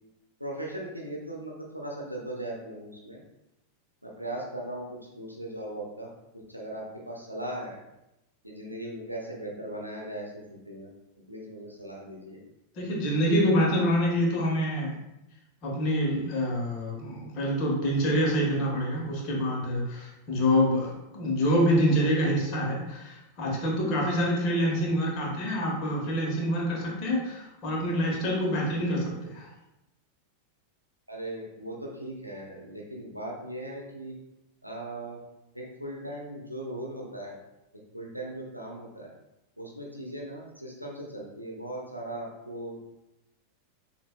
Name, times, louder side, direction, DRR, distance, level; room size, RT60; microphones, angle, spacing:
voice 1, 0.4-3.2 4.0-6.1 6.3-7.8 8.4-10.9 11.3-12.4 31.1-34.2 34.6-35.2 35.5-37.4 37.9-39.1 39.6-42.8, right 1 dB, 90° right, -2 dB, 0.7 m, -38 dB
voice 2, 12.8-14.9 15.6-29.5, equal, 40° left, -2 dB, 1.3 m, -26 dB
6.6 x 2.6 x 2.2 m, 0.91 s
figure-of-eight pair, 90°, 0 cm